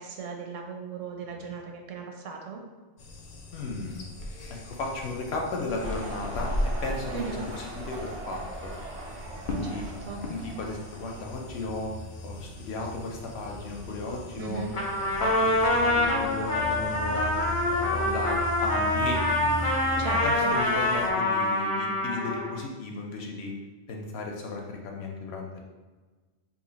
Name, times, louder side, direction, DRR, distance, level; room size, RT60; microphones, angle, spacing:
voice 1, 0.0-2.6 7.1-7.5 9.6-10.2 14.4-14.7 20.0-20.5, right 5 dB, 85° right, 2 dB, 1.0 m, -37 dB
sound 1, 3.0-21.1, left 1 dB, 80° left, 0.3 m, -37 dB
voice 2, 3.5-4.0 4.5-8.7 9.5-9.9 10.3-11.9 12.2-14.7 15.2-17.4 17.7-19.5 20.2-23.5 23.9-25.6, left 3 dB, 65° left, 0 dB, 0.8 m, -35 dB
sound 2, 5.8-12.0, right 2 dB, 55° right, 0.5 m, -40 dB
Trumpet, 14.7-22.6, left 1 dB, 35° left, 0.6 m, -26 dB
2.9 x 2.4 x 3.9 m, 1.3 s
omnidirectional pair, 1.2 m